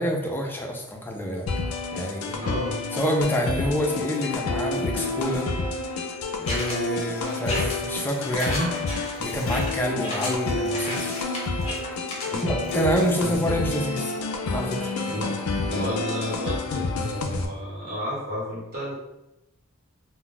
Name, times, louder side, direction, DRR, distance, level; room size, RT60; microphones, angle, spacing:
voice 1, 0.0-1.5 1.9-2.4 2.9-5.5 6.4-8.7 9.2-11.2 12.4-14.1 14.5-14.9, equal, 10° left, 0 dB, 0.4 m, -27 dB
sound 1, 1.5-17.5, left 3 dB, 75° left, 0.4 m, -29 dB
voice 2, 2.3-2.8 12.3-12.6 13.2-13.4 15.1-15.4 15.7-18.9, equal, 45° right, -6 dB, 1.1 m, -32 dB
sound 2, 6.5-13.4, left 1 dB, 30° left, 0.8 m, -34 dB
2.3 x 2.1 x 3.8 m, 0.91 s
head